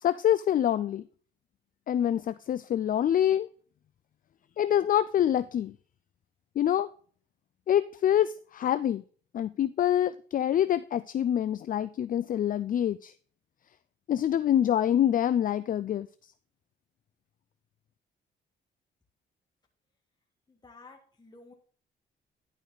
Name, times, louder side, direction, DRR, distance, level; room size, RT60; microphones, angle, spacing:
voice 1, 0.0-1.0 1.9-3.5 4.6-5.7 6.6-6.9 7.7-9.0 9.3-13.1 14.1-16.1, left 10 dB, 45° left, 14 dB, 0.4 m, -26 dB
voice 2, 20.5-21.5, left 3 dB, 20° left, 1 dB, 1.5 m, -52 dB
11.0 x 5.1 x 3.9 m, 0.44 s
cardioid pair, 90°, 20 cm